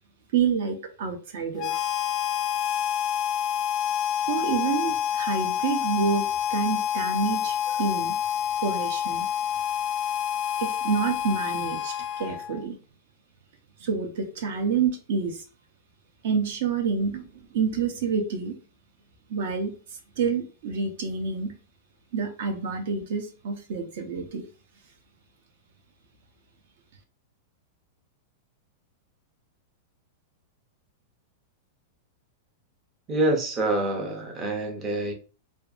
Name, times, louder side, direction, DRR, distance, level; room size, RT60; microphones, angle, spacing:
voice 1, 0.3-1.9 4.3-8.1 8.6-9.3 10.6-12.8 13.8-15.4 16.2-18.5 19.3-19.7 20.2-21.5 22.1-24.5, right 5 dB, 60° right, 0.6 m, -28 dB
Harmonica, 1.6-12.6, left 9 dB, 25° left, 0.3 m, -28 dB
voice 2, 33.1-35.1, right 2 dB, 20° right, 0.5 m, -26 dB
2.6 x 2.3 x 2.4 m
supercardioid pair, 165°, 0 cm